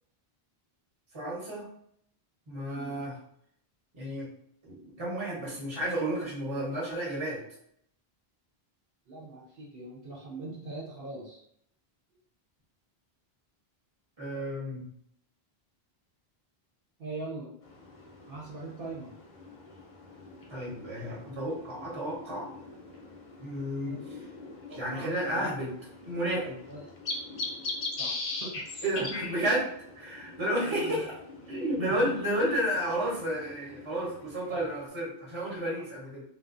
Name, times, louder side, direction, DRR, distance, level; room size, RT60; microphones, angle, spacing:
voice 1, 1.1-1.7 2.5-3.2 3.9-4.3 4.6-7.4 14.2-14.9 20.5-22.5 23.4-24.2 24.7-25.7 26.1-26.6 28.8-31.1 31.5-36.2, right 1 dB, 30° right, -4 dB, 0.8 m, -32 dB
voice 2, 9.1-11.4 17.0-17.5 18.3-19.1 23.8-24.0 24.7-25.5 26.7-26.9 28.0-28.8 30.6-31.0 31.8-32.2 34.5-34.8 35.7-35.8, right 3 dB, 65° right, -4 dB, 0.9 m, -42 dB
sound 1, 17.6-34.9, left 3 dB, 55° left, 0.6 m, -42 dB
2.5 x 2.2 x 2.4 m, 0.69 s
omnidirectional pair, 1.0 m